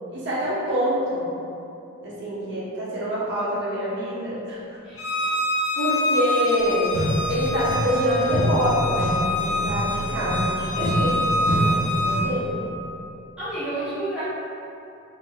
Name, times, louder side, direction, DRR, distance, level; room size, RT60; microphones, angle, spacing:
voice 1, 0.1-1.3 2.0-4.8 5.7-7.0 7.3-12.5, equal, 55° right, -10 dB, 1.3 m, -26 dB
voice 2, 4.8-5.1 13.4-14.2, right 2 dB, 5° right, -19 dB, 1.5 m, -30 dB
Bowed string instrument, 5.0-12.2, left 1 dB, 65° left, 0.5 m, -26 dB
sound 1, 6.6-6.7 6.9-8.0 8.3-12.4, equal, 50° left, 1.2 m, -26 dB
4.4 x 3.8 x 2.4 m, 2.7 s
head